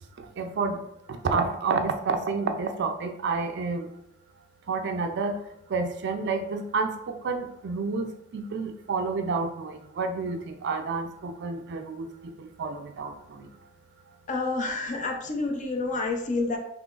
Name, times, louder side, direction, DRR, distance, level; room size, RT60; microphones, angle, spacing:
voice 1, 0.4-0.8 1.1-3.9 4.7-5.4 5.7-12.1 12.4-13.5, right 4 dB, 60° right, 6 dB, 0.4 m, -29 dB
voice 2, 14.3-16.6, left 3 dB, 40° left, 3 dB, 0.5 m, -28 dB
3.7 x 3.1 x 2.4 m, 0.78 s
head